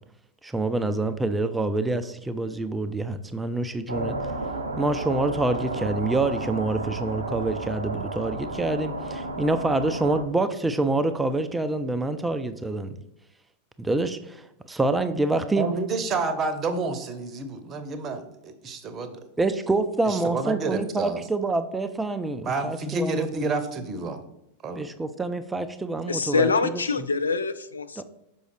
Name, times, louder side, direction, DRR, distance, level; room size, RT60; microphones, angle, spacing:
voice 1, 0.4-4.2 4.8-13.0 13.8-15.7 19.4-23.4 24.8-26.8 28.0-28.1, right 2 dB, 10° right, 10 dB, 0.4 m, -26 dB
sound 1, 3.9-10.2, right 2 dB, 75° right, 0.6 m, -32 dB
voice 2, 15.6-19.2 20.1-21.2 22.4-24.2 24.6-24.9, right 3 dB, 25° right, 9 dB, 0.8 m, -29 dB
voice 3, 26.1-28.0, left 4 dB, 75° left, 13 dB, 0.4 m, -25 dB
6.3 x 5.3 x 3.2 m, 0.85 s
figure-of-eight pair, 90°, 0 cm